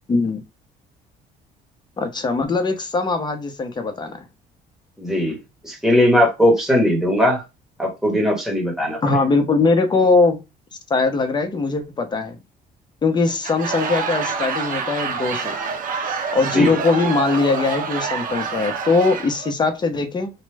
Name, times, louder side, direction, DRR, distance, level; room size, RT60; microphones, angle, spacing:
voice 1, 0.1-0.4 2.0-4.3 9.0-10.4 10.9-12.4 13.0-15.6 16.3-20.3, left 3 dB, 25° left, 0.8 m, -20 dB
voice 2, 5.0-5.4 5.6-7.4 7.8-9.0 16.5-16.7, left 1 dB, 5° right, 1.3 m, -18 dB
Laughter / Crowd, 13.3-19.5, right 5 dB, 55° right, 0.6 m, -27 dB
3.1 x 2.3 x 3.4 m
cardioid pair, 110°, 17 cm